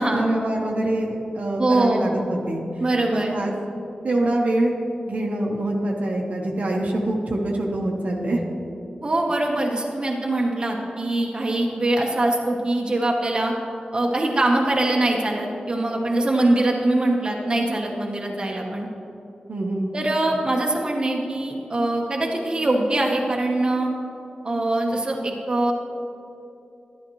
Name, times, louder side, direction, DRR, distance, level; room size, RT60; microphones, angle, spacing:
voice 1, 0.0-2.6 3.1-3.5 4.0-4.8 5.0-8.4 19.5-19.9, right 1 dB, 60° right, -1 dB, 1.1 m, -24 dB
voice 2, 1.6-2.1 2.8-3.4 9.0-13.5 13.9-18.9 19.9-23.9 24.4-25.7, right 2 dB, 30° right, -1 dB, 1.1 m, -23 dB
11.5 x 11.5 x 3.2 m, 2.8 s
wide cardioid pair, 120°, 3 cm